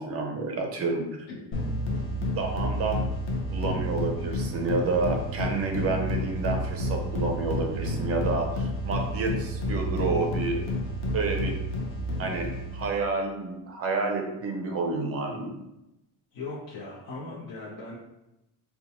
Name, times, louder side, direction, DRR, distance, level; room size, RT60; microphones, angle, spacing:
voice 1, 0.0-1.3 2.4-3.1 3.5-10.7 11.1-11.5 12.2-15.5, right 3 dB, 35° right, 3 dB, 0.5 m, -29 dB
sound 1, 1.5-13.0, equal, 30° left, 0.5 m, -30 dB
voice 2, 16.3-18.0, left 3 dB, 55° left, -8 dB, 0.8 m, -38 dB
4.3 x 2.2 x 2.8 m, 0.91 s
cardioid pair, 175°, 42 cm